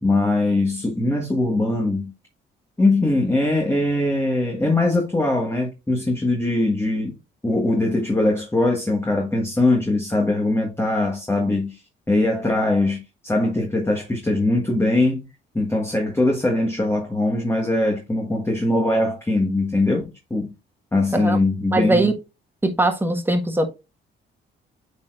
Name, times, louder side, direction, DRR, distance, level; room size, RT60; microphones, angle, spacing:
voice 1, 0.0-2.1 2.8-7.2 7.4-11.8 12.1-15.2 15.5-20.5 20.9-22.1, left 2 dB, 10° left, 1.5 m, -21 dB
voice 2, 21.7-22.1 22.6-23.7, right 2 dB, 10° right, 1.6 m, -20 dB
8.7 x 4.2 x 2.5 m
cardioid pair, 90°, 20 cm